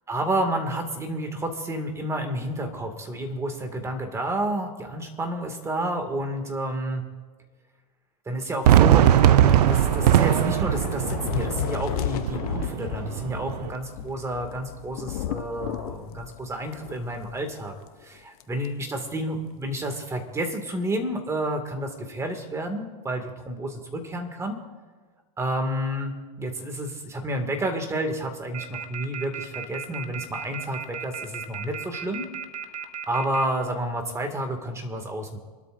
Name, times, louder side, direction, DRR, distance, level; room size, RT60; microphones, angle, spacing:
voice 1, 0.1-7.0 8.3-17.7 18.0-24.6 25.4-32.3 33.1-35.4, right 1 dB, 15° right, 5 dB, 2.2 m, -30 dB
Fireworks, 8.6-13.7, right 11 dB, 85° right, 0.6 m, -20 dB
Thunder / Rain, 9.0-17.6 17.9-18.0 18.4-18.7, left 13 dB, 70° left, 0.8 m, -34 dB
sound 1, 28.5-33.4, right 8 dB, 40° right, 1.4 m, -34 dB
27.5 x 12.5 x 2.6 m, 1.4 s
supercardioid pair, 135°, 20 cm